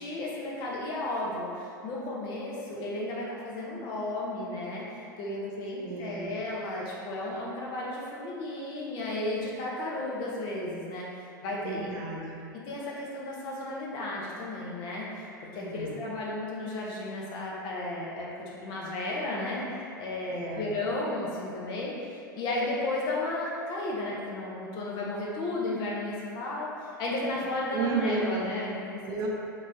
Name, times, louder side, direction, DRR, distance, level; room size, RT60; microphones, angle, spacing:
voice 1, 0.0-4.8 5.2-11.1 11.4-11.9 12.5-19.6 20.0-21.9 22.3-26.7 27.0-29.2, left 2 dB, 45° left, -4 dB, 0.9 m, -33 dB
voice 2, 5.8-6.3 11.5-12.4 15.6-16.0 20.3-20.7 27.7-28.4 29.0-29.3, right 3 dB, 35° right, -2 dB, 0.6 m, -32 dB
4.1 x 3.6 x 2.7 m, 2.4 s
figure-of-eight pair, 85°, 11 cm